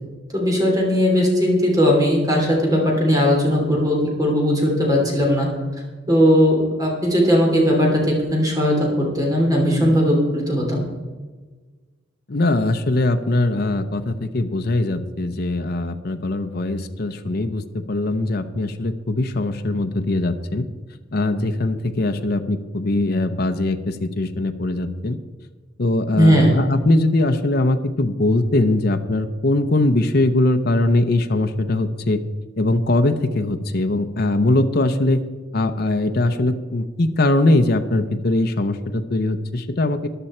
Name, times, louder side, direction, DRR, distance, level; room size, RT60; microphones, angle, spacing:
voice 1, 0.3-5.5 6.1-10.8 26.1-26.6, equal, 20° right, -1 dB, 3.0 m, -18 dB
voice 2, 12.3-20.6 21.1-25.2 25.8-32.2 32.6-35.2 35.5-40.1, left 2 dB, 50° left, 7 dB, 0.7 m, -21 dB
14.0 x 11.0 x 4.4 m, 1.3 s
head